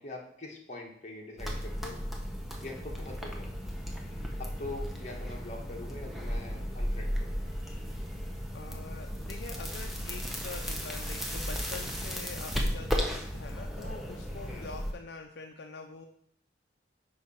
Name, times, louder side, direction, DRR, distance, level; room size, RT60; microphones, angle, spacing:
voice 1, 0.0-2.0 2.6-3.5 4.4-7.6 14.5-14.7, left 2 dB, 40° left, -1 dB, 1.3 m, -43 dB
sound 1, 1.4-14.9, equal, ahead, 0.8 m, -35 dB
voice 2, 8.5-16.1, left 4 dB, 70° left, 4 dB, 0.5 m, -45 dB
4.8 x 4.7 x 5.7 m, 0.68 s
head